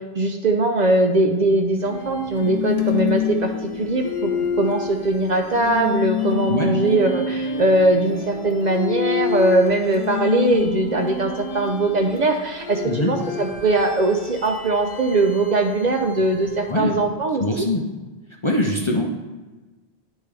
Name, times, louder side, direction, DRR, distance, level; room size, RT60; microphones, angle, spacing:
voice 1, 0.1-3.5 3.8-4.3 4.6-17.7, right 2 dB, 55° right, 4 dB, 0.6 m, -20 dB
sound 1, 1.8-16.9, left 6 dB, 85° left, 1.1 m, -28 dB
voice 2, 6.5-6.8 12.9-13.2 16.7-17.0 17.4-18.0 18.4-19.1, left 1 dB, 40° left, 1 dB, 0.5 m, -23 dB
10.0 x 3.6 x 3.3 m, 1.2 s
omnidirectional pair, 1.0 m